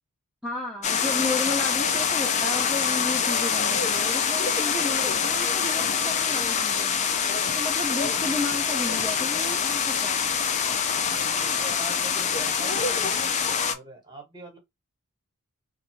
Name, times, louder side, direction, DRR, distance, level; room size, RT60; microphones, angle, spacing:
voice 1, 0.4-6.9 7.6-10.2, left 2 dB, ahead, 0.7 m, -33 dB
sound 1, 0.8-13.7, left 6 dB, 30° left, 0.4 m, -25 dB
voice 2, 11.1-13.3 13.6-14.6, right 2 dB, 20° right, 1.2 m, -42 dB
2.6 x 2.5 x 3.0 m
head